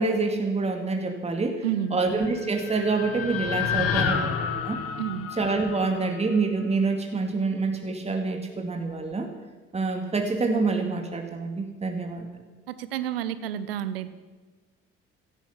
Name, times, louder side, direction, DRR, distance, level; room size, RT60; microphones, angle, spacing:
voice 1, 0.0-1.6 1.9-4.8 5.4-9.3 9.7-12.3, right 3 dB, 20° right, 4 dB, 2.2 m, -27 dB
voice 2, 1.6-2.0 5.0-5.3 12.7-14.1, right 10 dB, 75° right, 14 dB, 0.9 m, -30 dB
sound 1, 2.2-6.4, left 7 dB, 50° left, 1.9 m, -30 dB
16.5 x 14.5 x 5.8 m, 1.3 s
figure-of-eight pair, 50°, 30 cm